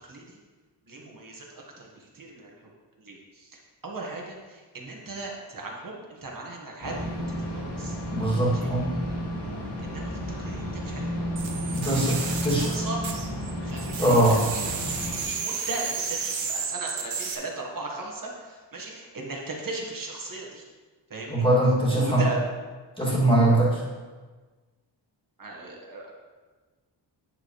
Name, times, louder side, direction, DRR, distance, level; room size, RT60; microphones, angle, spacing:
voice 1, 0.9-2.5 3.0-3.5 3.8-8.0 8.6-8.7 9.1-11.2 11.5-13.0 13.6-14.6 14.9-20.6 21.1-21.4 21.9-22.4 25.4-26.1, right 2 dB, 45° right, -1 dB, 1.6 m, -38 dB
sound 1, 6.8-15.2, equal, 60° left, 2.3 m, -32 dB
voice 2, 8.1-8.9 11.7-12.8 14.0-14.4 21.3-22.2 23.0-23.8, right 1 dB, 10° left, -7 dB, 2.5 m, -22 dB
sound 2, 11.4-13.5 13.8-17.4, right 5 dB, 75° right, 1.1 m, -32 dB
9.4 x 6.8 x 3.2 m, 1.3 s
wide cardioid pair, 140°, 46 cm